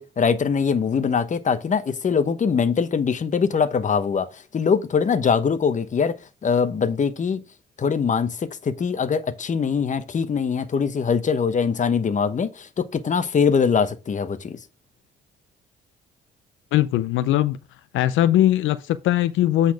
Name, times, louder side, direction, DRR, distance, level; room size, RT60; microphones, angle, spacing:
voice 1, 0.0-4.3 4.5-6.2 6.4-7.4 7.8-14.6, left 6 dB, 40° left, 1.0 m, -22 dB
voice 2, 16.7-17.6 17.9-19.7, left 13 dB, 85° left, 0.5 m, -20 dB
8.3 x 4.2 x 4.7 m
cardioid pair, 90°, 20 cm